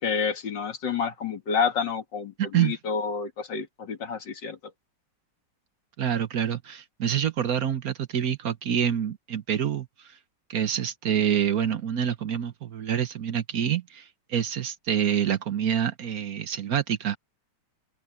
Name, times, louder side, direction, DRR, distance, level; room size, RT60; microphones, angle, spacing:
voice 1, 0.0-4.6, left 6 dB, 85° left, 2.8 m, -29 dB
voice 2, 2.4-2.7 6.0-9.9 10.5-17.2, right 9 dB, 60° right, 1.3 m, -27 dB
open air
omnidirectional pair, 1.9 m